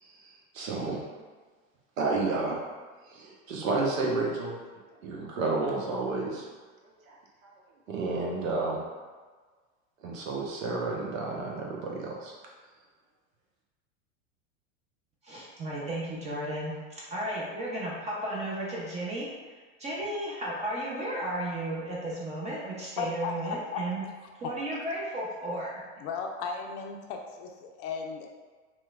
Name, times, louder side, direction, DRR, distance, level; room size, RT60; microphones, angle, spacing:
voice 1, 0.0-1.0 2.0-2.6 3.1-4.6 5.0-6.4 6.8-7.2 7.9-8.8 10.0-12.3, right 3 dB, 85° right, -2 dB, 0.8 m, -31 dB
voice 2, 15.2-24.0 24.4-25.7, right 1 dB, 20° right, -5 dB, 0.4 m, -34 dB
voice 3, 23.0-23.8 26.0-28.3, left 5 dB, 45° left, 2 dB, 0.4 m, -35 dB
3.0 x 2.1 x 2.3 m, 1.4 s
hypercardioid pair, 110°, 39 cm